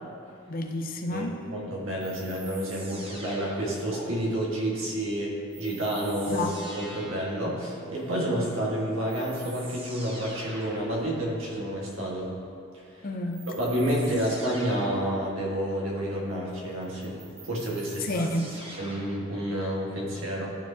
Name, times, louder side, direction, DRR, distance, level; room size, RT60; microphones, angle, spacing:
voice 1, 0.5-1.4 6.3-6.5 13.0-13.4 18.0-18.5, left 1 dB, 45° left, 4 dB, 0.6 m, -30 dB
voice 2, 1.1-6.5 6.7-12.3 13.5-17.2 17.4-18.3 18.8-20.6, right 1 dB, 80° right, -3 dB, 1.6 m, -29 dB
sound 1, 2.0-4.0 5.5-7.3 8.6-8.7 9.1-10.9 13.3-15.1 16.8-19.3, right 2 dB, 30° right, 0.8 m, -44 dB
13.0 x 4.5 x 2.8 m, 2.5 s
head